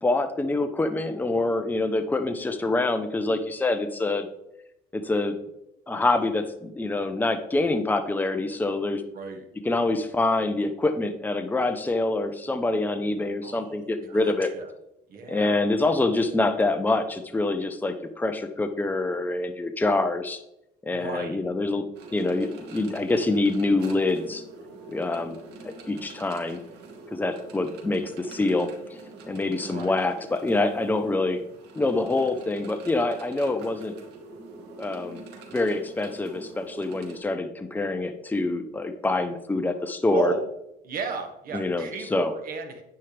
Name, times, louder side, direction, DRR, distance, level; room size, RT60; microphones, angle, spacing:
voice 1, 0.0-4.3 4.9-5.4 5.9-9.0 9.6-14.5 15.3-20.4 20.8-24.4 24.9-25.4 25.6-26.6 27.1-29.0 29.3-31.4 31.7-34.0 34.8-35.2 35.5-40.3 41.5-42.3, left 2 dB, 10° left, 7 dB, 0.9 m, -26 dB
voice 2, 9.1-9.5 13.4-14.7 15.1-15.6 20.9-21.4 29.6-30.0 40.1-40.5 40.8-42.8, right 4 dB, 60° right, 5 dB, 1.9 m, -34 dB
sound 1, 21.9-37.2, right 3 dB, 85° right, 2.1 m, -45 dB
9.4 x 9.2 x 3.4 m, 0.83 s
cardioid pair, 110°, 17 cm